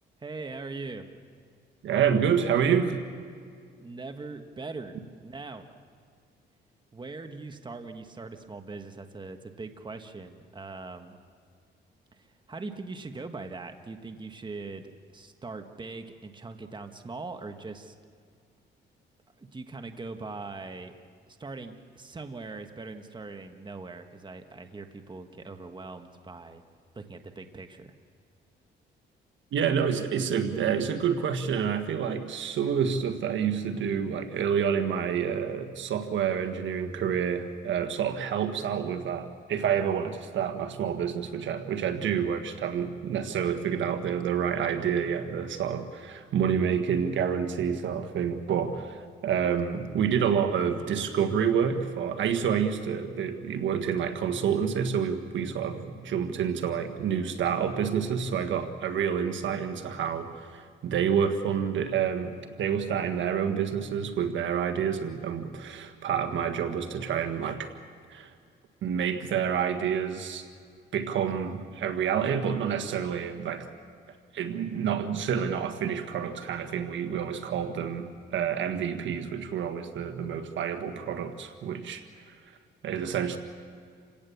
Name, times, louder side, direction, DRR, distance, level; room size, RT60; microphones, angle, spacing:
voice 1, 0.2-1.1 3.7-5.0 5.2-5.6 6.9-11.2 12.1-14.8 15.1-17.9 19.4-20.9 21.3-26.6 26.9-27.9, right 3 dB, 25° right, 6 dB, 1.6 m, -41 dB
voice 2, 1.8-3.0 29.5-67.7 68.1-68.3 68.8-70.4 70.9-73.7 74.3-82.0 82.8-83.4, right 7 dB, 70° right, 8 dB, 1.6 m, -28 dB
29.0 x 17.5 x 7.1 m, 2.1 s
cardioid pair, 90°, 20 cm